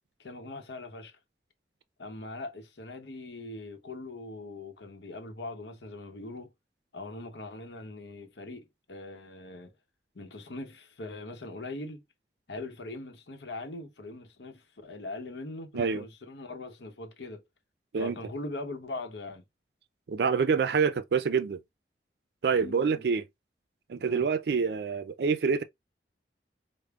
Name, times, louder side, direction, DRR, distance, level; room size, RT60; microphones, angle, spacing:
voice 1, 0.2-1.2 2.0-6.5 6.9-9.7 10.1-12.0 12.5-17.4 17.9-19.4 22.6-23.1 24.0-24.3, left 2 dB, 85° left, 0.8 m, -41 dB
voice 2, 20.1-21.6 22.4-23.2 23.9-25.6, right 5 dB, 70° right, 0.4 m, -26 dB
5.0 x 2.0 x 2.3 m
head